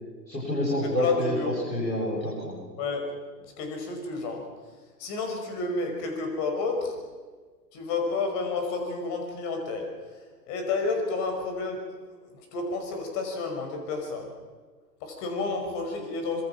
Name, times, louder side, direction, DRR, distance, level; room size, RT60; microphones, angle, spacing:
voice 1, 0.3-2.6, equal, 90° left, -6 dB, 7.7 m, -28 dB
voice 2, 1.0-1.6 2.8-3.0 3.6-4.4 5.0-6.9 7.7-9.9 10.5-11.8 12.3-14.3 15.0-16.4, left 3 dB, 35° left, 3 dB, 5.8 m, -30 dB
26.0 x 22.5 x 6.0 m, 1.5 s
figure-of-eight pair, 105°, 49 cm